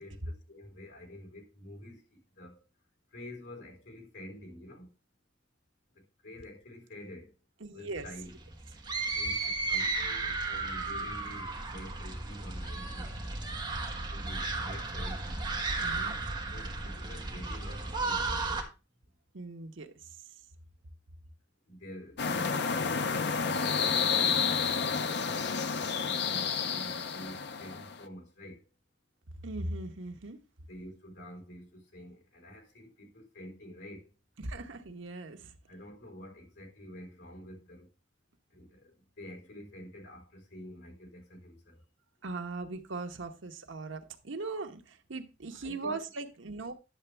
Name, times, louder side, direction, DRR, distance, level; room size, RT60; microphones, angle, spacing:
voice 1, 0.0-2.6 3.1-4.9 6.0-7.3 7.7-8.4 9.1-13.5 14.1-15.5 16.5-18.7 21.7-25.2 26.0-28.6 30.7-34.1 35.7-37.9 38.5-41.8 45.6-46.0, equal, 75° left, 4.0 m, -48 dB
voice 2, 7.6-8.1 15.8-16.2 19.3-20.3 29.4-30.4 34.4-35.6 42.2-46.7, right 3 dB, 80° right, 1.1 m, -39 dB
sound 1, 8.0-18.6, right 3 dB, 25° right, 1.4 m, -34 dB
sound 2, 22.2-28.0, left 6 dB, 60° left, 0.6 m, -30 dB
10.5 x 7.0 x 3.3 m
head